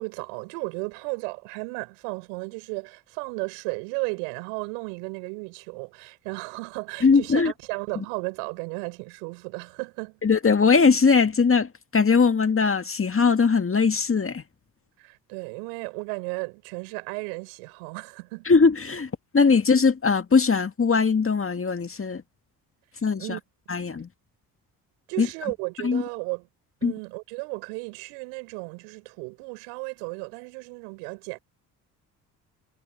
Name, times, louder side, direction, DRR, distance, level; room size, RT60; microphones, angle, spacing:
voice 1, 0.0-10.2 15.0-18.4 23.2-23.4 25.1-26.5 26.8-31.4, right 38 dB, 75° right, 6.9 m, -34 dB
voice 2, 7.0-7.5 10.2-14.4 18.5-22.2 23.0-23.3 23.7-24.1 25.2-25.3 25.8-26.0 26.8-26.9, left 5 dB, 30° left, 2.0 m, -20 dB
hypercardioid pair, 50°, 46 cm